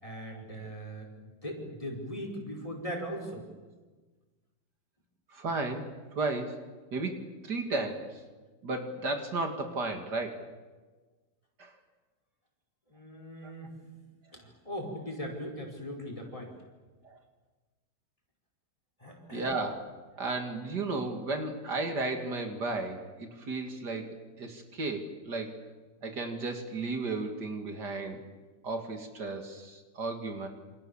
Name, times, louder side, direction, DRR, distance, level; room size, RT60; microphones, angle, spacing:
voice 1, 0.0-3.5 12.9-13.7 14.3-16.6 19.0-19.6, equal, 20° left, 1 dB, 5.5 m, -39 dB
voice 2, 5.3-6.6 6.9-8.2 8.6-10.5 11.6-11.7 13.4-13.5 17.0-17.2 19.3-19.8 20.1-25.6 26.0-28.2 28.6-30.5, right 3 dB, 70° right, 5 dB, 3.0 m, -34 dB
28.0 x 26.5 x 7.3 m, 1.3 s
omnidirectional pair, 1.8 m